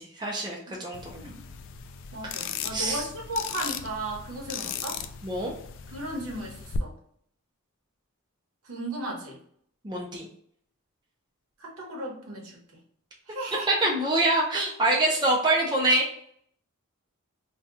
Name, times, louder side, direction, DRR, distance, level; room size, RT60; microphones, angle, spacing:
voice 1, 0.0-1.3 2.2-2.4 2.7-3.0 5.2-5.5 9.8-10.3 13.7-16.1, right 2 dB, 20° right, -2 dB, 0.4 m, -25 dB
sound 1, 0.9-6.8, left 8 dB, 60° left, 0.3 m, -38 dB
voice 2, 2.1-5.0 5.9-6.9 8.6-9.4 11.6-12.6 13.3-14.0, right 1 dB, 70° right, 0 dB, 0.9 m, -35 dB
2.7 x 2.2 x 3.6 m, 0.65 s
head